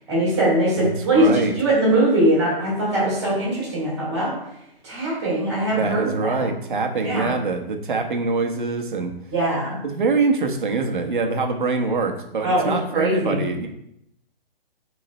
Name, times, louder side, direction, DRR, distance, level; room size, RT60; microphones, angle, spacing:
voice 1, 0.1-4.3 4.8-6.5 7.0-7.3 9.3-9.8 12.4-13.4, right 1 dB, 15° right, -7 dB, 2.3 m, -21 dB
voice 2, 0.8-1.5 5.7-9.2 9.8-13.7, right 4 dB, 55° right, 5 dB, 1.2 m, -24 dB
6.5 x 3.8 x 4.1 m, 0.78 s
hypercardioid pair, 180°, 30 cm